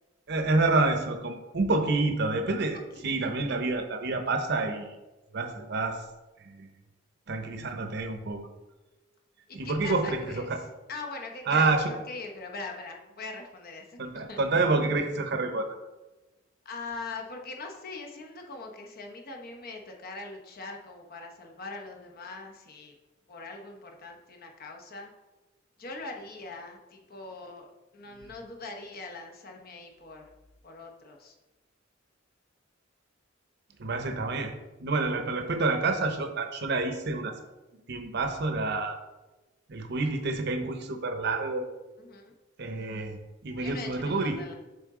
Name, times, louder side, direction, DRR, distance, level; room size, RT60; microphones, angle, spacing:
voice 1, 0.3-2.8 3.0-4.9 5.3-6.0 6.4-6.7 7.3-8.5 9.5-10.4 11.5-11.9 14.0-15.8 28.2-28.3 33.8-34.5 34.8-37.3 37.9-39.0 39.7-41.7 42.6-44.4, right 3 dB, 60° right, 6 dB, 0.8 m, -28 dB
voice 2, 3.0-3.5 9.5-14.4 16.6-22.9 23.3-25.1 25.8-27.7 27.9-30.3 30.6-31.3 42.0-42.3 43.6-44.5, left 3 dB, 50° left, 2 dB, 0.9 m, -42 dB
7.1 x 3.7 x 3.7 m, 1.1 s
head